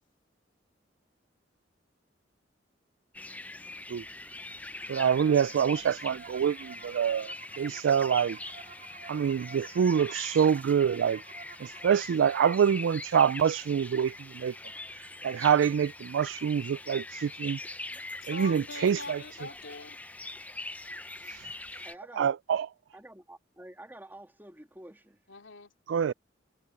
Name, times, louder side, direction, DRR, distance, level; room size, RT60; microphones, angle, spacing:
sound 1, 3.1-21.9, left 2 dB, 10° left, 0.6 m, -43 dB
sound 2, 4.5-12.4, right 5 dB, 45° right, 4.9 m, -51 dB
voice 1, 4.9-8.4 9.1-11.2 11.6-14.5 15.0-17.6 18.3-19.2 21.3-21.8 22.2-22.7 25.9-26.1, right 7 dB, 90° right, 0.3 m, -26 dB
voice 2, 18.2-20.0 25.3-25.7, left 3 dB, 85° left, 3.3 m, -43 dB
voice 3, 21.8-22.3 22.9-25.2, right 1 dB, 10° right, 2.7 m, -49 dB
head